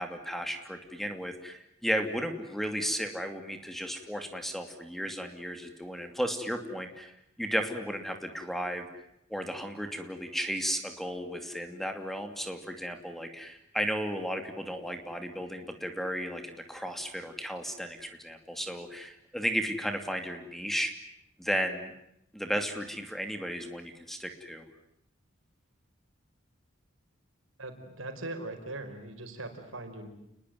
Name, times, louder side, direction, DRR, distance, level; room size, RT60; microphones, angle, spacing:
voice 1, 0.0-8.9 9.3-20.9 21.4-21.9 22.3-24.6, equal, ahead, 6 dB, 2.7 m, -34 dB
voice 2, 27.6-30.1, right 2 dB, 90° right, 6 dB, 5.2 m, -40 dB
29.5 x 21.0 x 9.4 m, 0.79 s
head